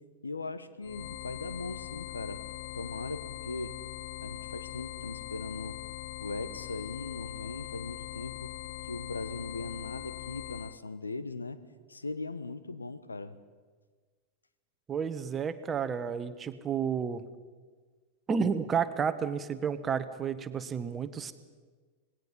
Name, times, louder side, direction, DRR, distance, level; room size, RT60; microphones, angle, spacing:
voice 1, 0.2-2.4 2.7-3.8 4.2-5.8 6.2-8.5 8.8-11.6 11.9-13.4, left 3 dB, 80° left, 13 dB, 1.2 m, -39 dB
sound 1, 0.8-10.8, left 14 dB, 50° left, 0.6 m, -41 dB
voice 2, 14.9-17.2 18.3-21.3, right 6 dB, 20° right, 12 dB, 1.3 m, -31 dB
26.5 x 19.5 x 5.6 m, 1.4 s
figure-of-eight pair, 90°, 0 cm